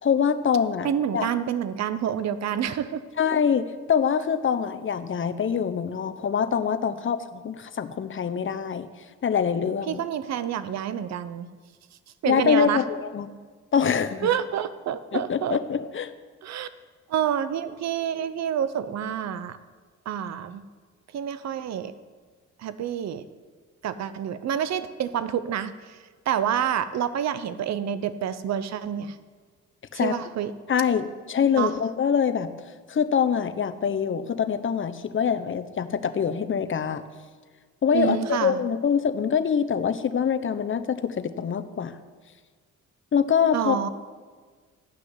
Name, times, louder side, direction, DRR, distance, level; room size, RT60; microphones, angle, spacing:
voice 1, 0.0-0.9 1.1-1.3 3.2-8.9 9.2-10.0 12.3-13.3 13.7-14.3 15.1-16.1 29.9-30.1 30.7-32.5 32.9-37.0 37.8-41.9 43.1-43.8, left 7 dB, 40° left, 9 dB, 1.0 m, -24 dB
voice 2, 0.8-3.0 9.9-11.5 12.2-12.8 14.2-15.6 16.4-16.7 17.1-19.6 20.1-20.6 21.1-21.9 22.6-23.2 23.8-26.0 26.3-29.2 29.9-30.5 31.6-31.7 37.9-38.6 43.5-43.9, right 9 dB, 60° right, 13 dB, 0.8 m, -28 dB
14.5 x 6.0 x 9.7 m, 1.5 s
cardioid pair, 90°, 30 cm